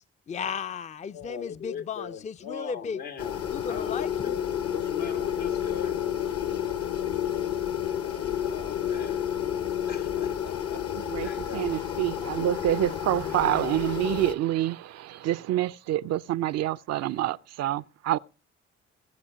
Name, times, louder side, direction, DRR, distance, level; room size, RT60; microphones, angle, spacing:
voice 1, 0.0-3.0 3.5-4.4, left 6 dB, 20° left, 0.5 m, -35 dB
voice 2, 1.1-6.0 8.4-9.3 9.9-10.8 11.2-11.7, left 7 dB, 75° left, 1.6 m, -39 dB
sound 1, 3.2-14.3, left 10 dB, 45° left, 0.9 m, -30 dB
voice 3, 11.0-18.2, right 13 dB, 50° right, 0.5 m, -27 dB
18.0 x 7.3 x 4.9 m
figure-of-eight pair, 40°, 34 cm